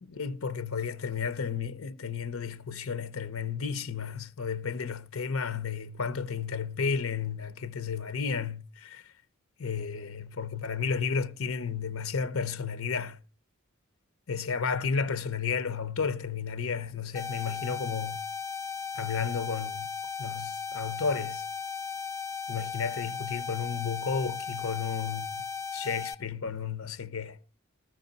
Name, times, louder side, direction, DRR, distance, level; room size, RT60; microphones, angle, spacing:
voice 1, 0.0-9.1 9.6-13.2 14.3-18.2 18.9-19.9 20.2-21.4 22.5-25.2 25.7-27.4, left 6 dB, 75° left, 0.8 m, -32 dB
sound 1, 17.1-26.1, left 6 dB, 15° left, 0.7 m, -36 dB
15.0 x 14.0 x 4.1 m
head